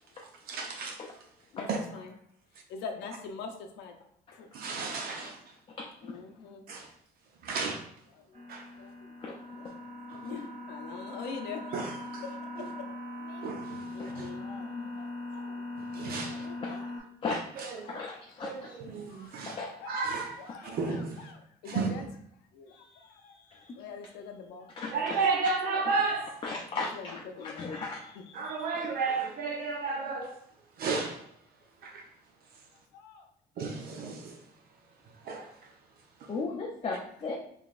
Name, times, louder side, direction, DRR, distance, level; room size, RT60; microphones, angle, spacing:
voice 1, 0.5-1.0 1.7-1.8 4.5-5.4 6.7-6.9 7.4-7.8 8.5-8.7 11.7-12.2 12.6-12.7 13.4-14.3 15.9-16.5 17.6-18.0 18.4-19.6 19.9-21.2 21.7-21.9 24.9-26.4 28.3-30.3 30.8-31.2 31.8-32.0 33.6-34.4 35.3-35.5, right 4 dB, 65° right, 3 dB, 0.6 m, -33 dB
voice 2, 1.5-2.1 2.7-3.9 4.3-4.5 5.2-5.3 6.0-6.6 8.1-8.4 8.8-9.7 10.2-12.0 13.2-13.5 13.9-14.9 15.3-15.6 16.1-17.1 17.8-18.5 19.1-20.1 20.4-22.0 22.5-24.7 25.3-25.4 26.7-28.7 29.8-29.9 32.9-33.3, left 5 dB, 85° left, 4 dB, 0.6 m, -45 dB
sound 1, 8.3-17.0, left 2 dB, 45° right, 1.4 m, -40 dB
voice 3, 17.9-18.8 19.5-19.7 24.8-25.2 26.4-28.1 28.7-28.9 36.3-37.4, left 3 dB, 30° left, -1 dB, 0.5 m, -36 dB
3.8 x 3.3 x 2.5 m, 0.69 s
cardioid pair, 110°, 17 cm